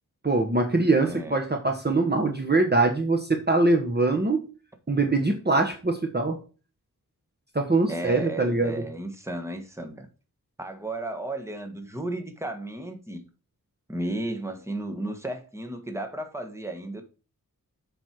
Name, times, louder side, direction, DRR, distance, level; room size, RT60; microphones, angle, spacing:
voice 1, 0.2-4.4 4.9-6.4 7.5-8.8, right 2 dB, 30° right, 1.3 m, -23 dB
voice 2, 7.9-10.1 10.6-13.2 13.9-17.0, right 1 dB, 10° right, 1.5 m, -34 dB
7.8 x 5.5 x 4.4 m
wide cardioid pair, 90°, 34 cm